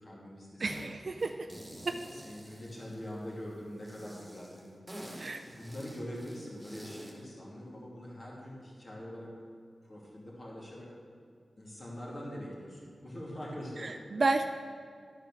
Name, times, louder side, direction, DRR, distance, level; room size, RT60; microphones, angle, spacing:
voice 1, 0.0-0.9 2.1-4.8 5.4-9.3 9.8-10.9 11.6-14.4, equal, 40° left, -4 dB, 2.5 m, -43 dB
voice 2, 0.6-1.3 1.8-2.0 5.2-5.4 13.8-14.5, right 3 dB, 55° right, 5 dB, 0.5 m, -31 dB
sound 1, 0.7-0.9 1.2-3.3 3.8-7.2, equal, 5° right, 2.3 m, -48 dB
12.0 x 4.9 x 6.3 m, 2.2 s
cardioid pair, 60°, 0 cm